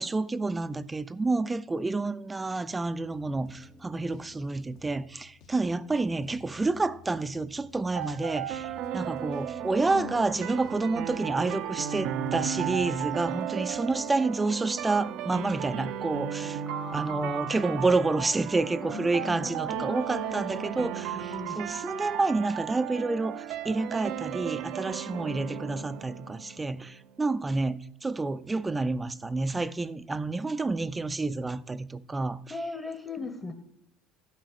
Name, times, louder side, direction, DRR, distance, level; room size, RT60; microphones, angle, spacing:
voice 1, 0.0-16.6 16.9-32.4, right 3 dB, 15° right, 0.5 m, -29 dB
sound 1, 3.0-14.3, left 4 dB, 75° left, 1.8 m, -55 dB
sound 2, 8.0-26.9, right 10 dB, 65° right, 0.6 m, -35 dB
voice 2, 9.9-10.4 16.7-18.3 18.8-20.8 21.0-21.6 32.5-33.5, left 3 dB, 15° left, 1.0 m, -40 dB
11.5 x 4.1 x 6.8 m
supercardioid pair, 100°, 0 cm